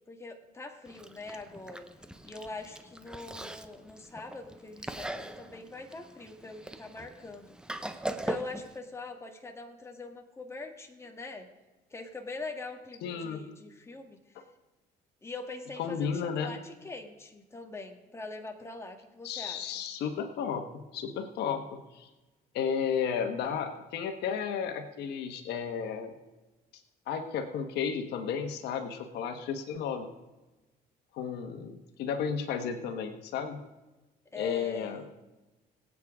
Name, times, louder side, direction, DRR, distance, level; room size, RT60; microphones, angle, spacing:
voice 1, 0.1-1.8 2.2-7.5 8.1-11.5 11.9-14.2 15.2-19.7 31.5-31.6 34.3-35.0, left 3 dB, 15° left, 3 dB, 1.6 m, -43 dB
Chewing mastication, 0.9-8.8, right 1 dB, 5° right, 0.7 m, -41 dB
voice 2, 13.0-13.4 14.3-14.4 15.8-16.5 19.2-22.1 22.5-26.1 26.7-30.1 31.1-33.6 34.3-35.0, left 7 dB, 80° left, 6 dB, 1.3 m, -33 dB
22.5 x 8.4 x 3.6 m, 1.1 s
cardioid pair, 110°, 17 cm